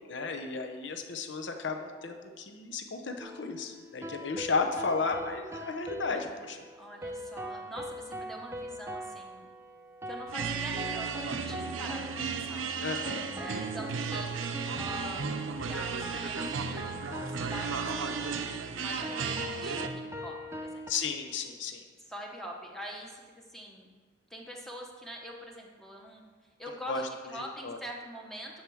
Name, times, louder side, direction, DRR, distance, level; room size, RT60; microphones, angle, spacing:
voice 1, 0.1-6.6 12.8-13.2 20.9-21.8 26.9-27.0 27.4-27.8, left 4 dB, 65° left, 5 dB, 0.8 m, -34 dB
sound 1, 3.2-20.9, equal, 15° right, 0.6 m, -42 dB
voice 2, 6.8-9.5 10.1-12.6 13.4-20.9 22.0-23.9 24.3-26.2 26.6-28.6, equal, ahead, -1 dB, 0.9 m, -44 dB
sound 2, 10.3-19.9, right 5 dB, 85° right, 0.6 m, -35 dB
10.0 x 4.7 x 6.2 m, 1.5 s
head